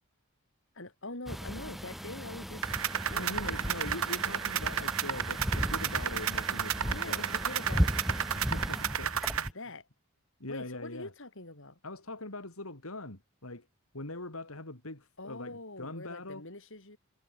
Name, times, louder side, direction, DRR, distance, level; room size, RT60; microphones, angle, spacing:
voice 1, 0.7-2.7 3.1-3.6 6.9-8.1 9.5-9.9 10.5-11.8 15.2-17.0, left 2 dB, 60° left, 7.6 m, -44 dB
sound 1, 1.3-9.5, equal, ahead, 0.4 m, -36 dB
sound 2, 2.6-9.5, right 9 dB, 75° right, 1.0 m, -32 dB
voice 2, 3.1-7.4 8.3-9.6 10.4-11.1 11.8-13.7 13.9-16.4, left 2 dB, 80° left, 4.4 m, -42 dB
head